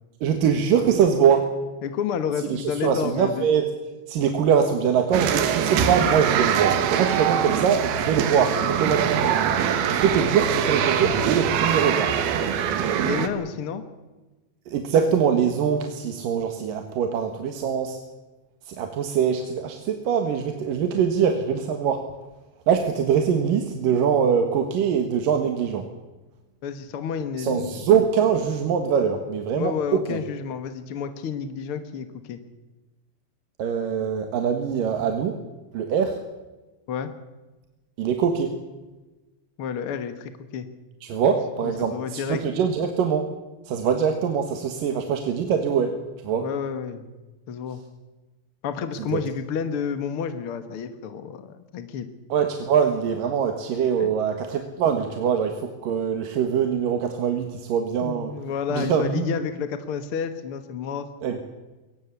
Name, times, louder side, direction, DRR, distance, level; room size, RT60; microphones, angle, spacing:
voice 1, 0.2-1.5 2.4-3.7 4.1-9.3 9.8-12.1 14.7-18.0 18.7-22.0 22.7-25.9 27.4-30.2 33.6-35.4 35.7-36.2 38.0-38.5 41.0-43.3 43.7-46.0 46.2-46.5 49.1-49.2 52.3-58.3 58.7-59.3 61.2-61.4, right 7 dB, 70° right, 5 dB, 3.1 m, -23 dB
voice 2, 1.8-3.5 13.0-13.8 26.6-27.8 29.6-32.4 36.9-37.1 39.6-40.7 41.6-42.4 46.4-47.1 47.5-47.8 48.6-52.1 54.0-54.1 58.0-61.1, left 7 dB, 60° left, 10 dB, 1.5 m, -30 dB
sound 1, 5.1-13.3, right 8 dB, 90° right, 3.5 m, -23 dB
22.5 x 19.0 x 8.3 m, 1.1 s
omnidirectional pair, 4.3 m